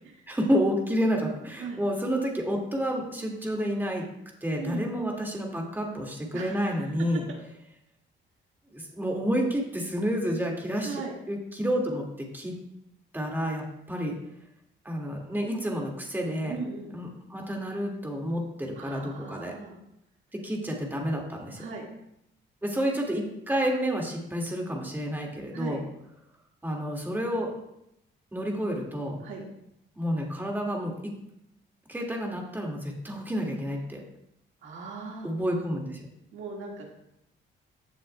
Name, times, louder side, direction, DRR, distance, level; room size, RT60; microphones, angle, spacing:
voice 1, 0.3-4.0 4.4-7.2 8.7-11.0 11.3-12.5 13.1-14.1 14.9-16.6 16.9-19.5 20.3-21.7 22.6-25.8 26.6-27.5 28.3-29.2 30.0-31.1 31.9-34.0 35.2-36.0, equal, 10° right, 0 dB, 2.0 m, -29 dB
voice 2, 6.3-6.9 10.8-11.2 16.5-16.9 18.8-19.8 21.6-21.9 25.5-25.8 29.2-29.4 34.6-35.3 36.3-36.9, right 4 dB, 80° right, 0 dB, 1.8 m, -38 dB
16.0 x 6.6 x 2.2 m, 0.80 s
cardioid pair, 90°, 20 cm